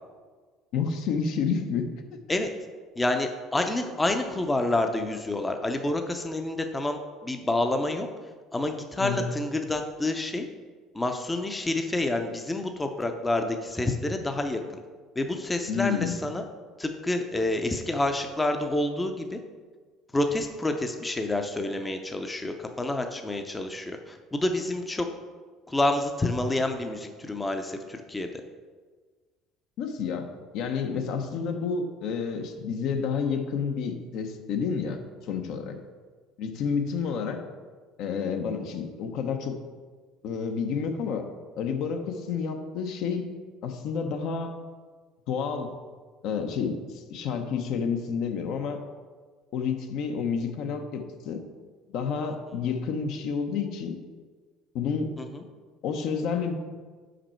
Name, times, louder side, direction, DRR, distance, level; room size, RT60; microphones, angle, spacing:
voice 1, 0.7-1.9 9.0-9.2 15.7-16.1 29.8-30.3 30.5-35.8 36.4-37.4 38.0-39.6 40.2-41.3 41.6-43.4 43.6-44.6 45.3-45.7 46.2-48.8 49.5-51.4 51.9-54.0 54.7-55.1 55.8-56.5, left 6 dB, 70° left, 5 dB, 0.7 m, -29 dB
voice 2, 3.0-8.1 8.5-10.5 10.9-14.8 15.2-16.4 16.8-19.4 20.1-25.1 25.7-28.3 55.2-55.4, left 2 dB, 15° left, 5 dB, 0.5 m, -28 dB
5.4 x 5.0 x 4.4 m, 1.5 s
supercardioid pair, 110°, 0 cm